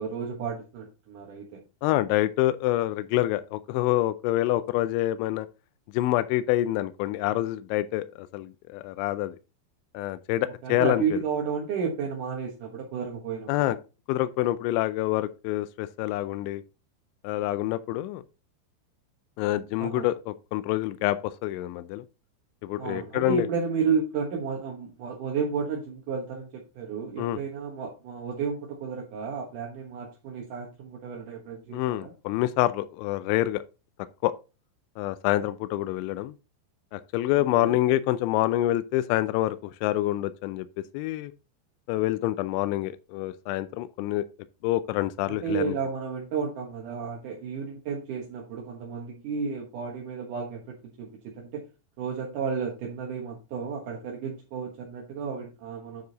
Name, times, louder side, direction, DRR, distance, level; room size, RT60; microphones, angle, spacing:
voice 1, 0.0-1.6 10.6-13.8 19.8-20.1 22.8-32.1 37.3-37.8 45.3-51.6 52.0-56.0, right 6 dB, 65° right, 2.1 m, -32 dB
voice 2, 1.8-5.5 5.9-9.4 9.9-11.2 13.5-13.8 14.1-16.6 17.2-18.2 19.4-22.0 22.6-23.5 27.2-27.4 31.7-33.6 34.2-34.3 35.0-36.3 36.9-40.7 40.9-41.3 41.9-44.2 44.6-45.8, left 15 dB, 85° left, 2.9 m, -27 dB
9.4 x 4.8 x 4.0 m
omnidirectional pair, 5.4 m